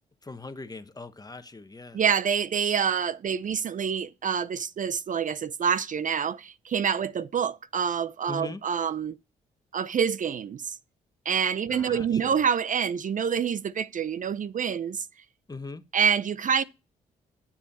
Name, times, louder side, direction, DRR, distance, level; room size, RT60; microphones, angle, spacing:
voice 1, 0.2-2.0 8.3-8.6 11.7-12.4 15.5-15.8, left 3 dB, 20° left, 1.3 m, -40 dB
voice 2, 1.9-9.2 9.7-10.8 11.3-15.1 15.9-16.6, right 7 dB, 45° right, 0.6 m, -27 dB
9.8 x 7.3 x 4.2 m
supercardioid pair, 55°, 18 cm